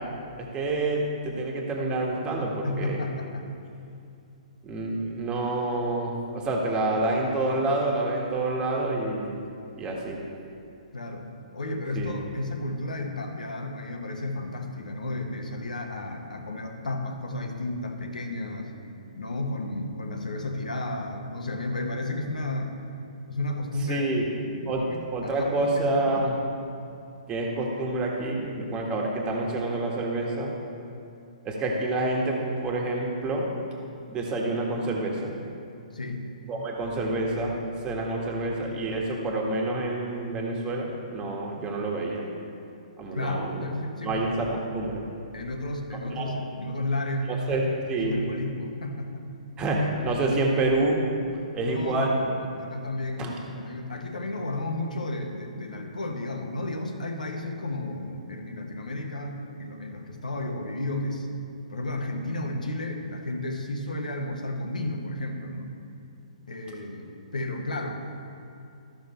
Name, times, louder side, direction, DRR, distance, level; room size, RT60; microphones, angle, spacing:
voice 1, 0.4-3.0 4.6-9.5 9.7-10.2 11.9-12.1 23.9-24.3 24.7-24.8 25.1-26.4 27.3-30.5 31.4-33.5 34.1-35.3 36.5-37.5 37.8-42.2 43.0-43.7 44.0-45.0 46.1-46.3 47.3-47.6 47.9-48.2 49.6-51.0 51.5-52.2 53.2-53.3, right 2 dB, 20° right, -1 dB, 1.5 m, -28 dB
voice 2, 2.6-3.4 10.9-18.7 19.2-22.8 23.3-24.1 24.5-26.3 35.9-36.3 43.1-44.3 45.3-49.3 51.6-61.3 61.7-65.7 66.5-67.9, left 2 dB, 85° left, 3 dB, 1.2 m, -33 dB
14.0 x 5.8 x 4.3 m, 2.6 s
hypercardioid pair, 135°, 4 cm